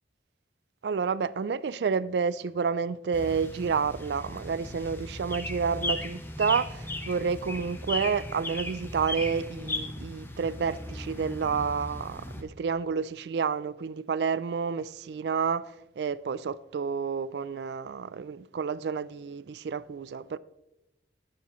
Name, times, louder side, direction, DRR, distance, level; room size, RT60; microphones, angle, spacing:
voice 1, 0.8-20.4, right 5 dB, 75° right, 0.4 m, -30 dB
sound 1, 3.1-12.4, left 1 dB, 15° left, 0.9 m, -37 dB
12.5 x 9.7 x 3.1 m
head